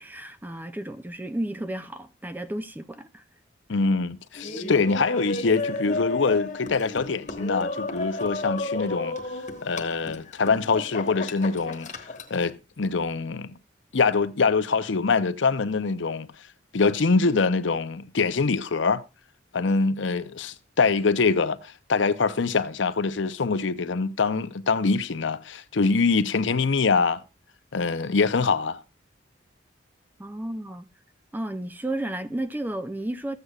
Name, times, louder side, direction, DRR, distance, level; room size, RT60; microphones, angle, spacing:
voice 1, 0.0-3.2 30.2-30.9 31.3-33.4, right 1 dB, 10° right, 0.4 m, -32 dB
voice 2, 3.7-9.2 9.6-12.0 12.3-13.6 13.9-16.3 16.7-19.0 19.5-27.2 27.7-28.8, left 4 dB, 70° left, 0.6 m, -24 dB
Laughter, 4.3-12.4, left 2 dB, 35° left, 1.2 m, -33 dB
14.0 x 8.1 x 2.4 m
head